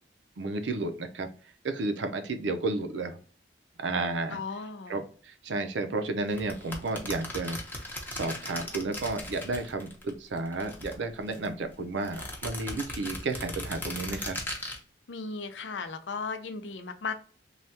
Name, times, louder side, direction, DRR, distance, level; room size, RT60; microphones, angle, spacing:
voice 1, 0.4-1.3 1.6-3.2 3.8-4.4 4.9-7.6 8.1-14.4, right 3 dB, 85° right, 8 dB, 0.5 m, -32 dB
voice 2, 4.3-5.0 15.1-17.1, left 4 dB, 85° left, 8 dB, 0.5 m, -36 dB
sound 1, 6.3-10.1 10.4-11.5 12.0-14.8, left 1 dB, 10° left, 0.7 m, -38 dB
3.3 x 2.3 x 2.7 m, 0.40 s
head